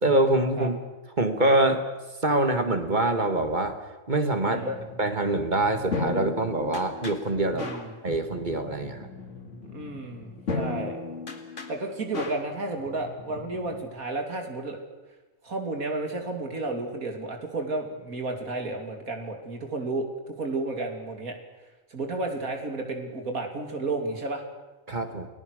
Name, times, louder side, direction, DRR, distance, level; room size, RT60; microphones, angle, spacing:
voice 1, 0.0-0.8 1.2-1.8 2.2-3.8 4.1-9.1 24.9-25.3, right 2 dB, 35° right, 7 dB, 1.9 m, -25 dB
voice 2, 4.4-4.8 7.5-7.9 9.6-11.0 11.7-14.8 15.4-21.4 21.9-24.4, right 2 dB, 90° right, 3 dB, 3.3 m, -32 dB
sound 1, 4.5-13.9, left 3 dB, 60° left, 2.5 m, -36 dB
28.5 x 20.0 x 6.6 m, 1.1 s
omnidirectional pair, 1.4 m